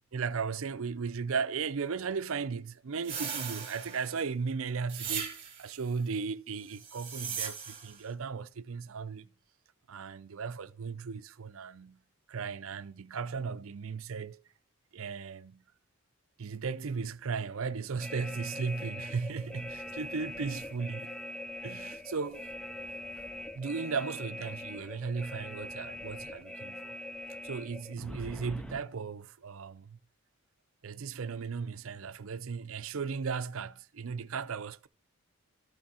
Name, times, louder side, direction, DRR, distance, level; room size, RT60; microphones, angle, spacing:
voice 1, 0.1-9.3 9.9-12.0 12.3-14.4 14.9-15.6 16.4-21.1 21.6-22.5 23.5-26.9 27.4-30.0 30.8-34.9, right 5 dB, 70° right, 0.5 m, -36 dB
sound 1, 3.0-4.2 4.9-5.8 6.7-8.0, right 7 dB, 25° right, 2.4 m, -38 dB
sound 2, 18.0-28.8, left 1 dB, 5° left, 0.4 m, -42 dB
13.5 x 6.1 x 4.2 m
head